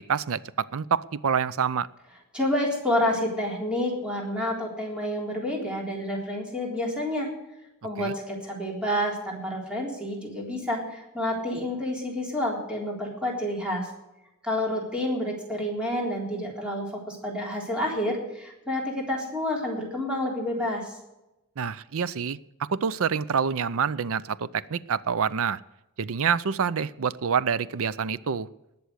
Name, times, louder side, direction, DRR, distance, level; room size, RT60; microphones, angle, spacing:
voice 1, 0.1-1.9 8.0-8.1 21.6-22.4 22.7-25.6 26.0-28.5, right 6 dB, 65° right, 18 dB, 0.5 m, -27 dB
voice 2, 2.3-7.3 7.8-13.9 14.4-20.8, left 1 dB, 5° right, -2 dB, 3.7 m, -29 dB
19.5 x 7.0 x 6.3 m, 0.95 s
head